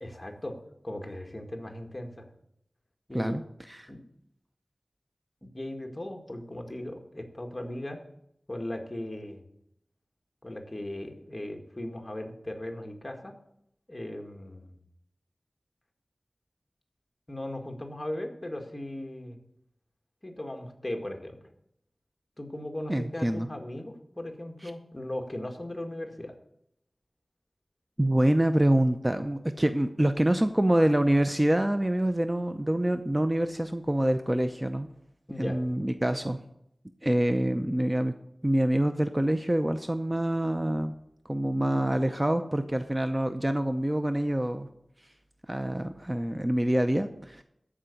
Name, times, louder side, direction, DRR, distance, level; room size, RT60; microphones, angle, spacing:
voice 1, 0.0-0.6 0.8-2.3 3.1-3.3 3.9-4.0 5.4-8.0 8.5-9.4 10.4-13.3 13.9-14.8 17.3-19.4 20.2-21.4 22.4-26.3 35.3-35.6, left 1 dB, 25° left, 2 dB, 2.0 m, -37 dB
voice 2, 22.9-23.5 28.0-34.9 35.4-36.4 37.0-38.1 38.4-40.9 41.2-44.7 45.5-47.4, right 1 dB, 20° right, 8 dB, 0.6 m, -26 dB
13.5 x 5.0 x 8.4 m, 0.76 s
wide cardioid pair, 70°, 0 cm